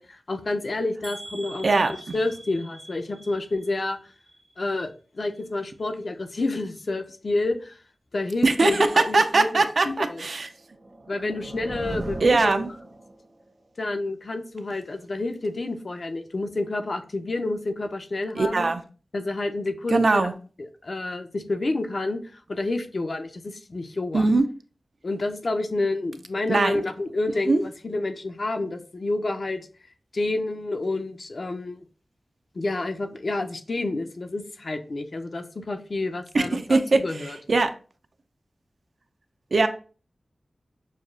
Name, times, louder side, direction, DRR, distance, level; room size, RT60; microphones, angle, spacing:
voice 1, 0.0-1.7 2.1-4.0 4.6-4.9 5.1-7.8 8.1-10.2 11.1-12.5 13.8-18.7 19.1-20.3 20.8-22.2 22.5-24.3 25.0-29.6 30.1-31.8 32.5-37.4, left 2 dB, 55° left, 6 dB, 0.5 m, -29 dB
sound 1, 1.0-5.0 5.3-5.9 6.4-6.5 6.9-7.0, right 2 dB, 85° right, 1.2 m, -45 dB
voice 2, 1.6-2.1 8.4-10.5 12.2-12.7 18.4-18.8 19.9-20.3 24.1-24.4 26.5-26.8 27.5-27.6 36.3-37.0 37.5-37.7 39.5-39.7, right 3 dB, 65° right, 8 dB, 0.4 m, -21 dB
sound 2, 10.5-13.4, right 1 dB, 50° right, 0.8 m, -37 dB
6.3 x 2.3 x 2.4 m, 0.38 s
wide cardioid pair, 80°, 0 cm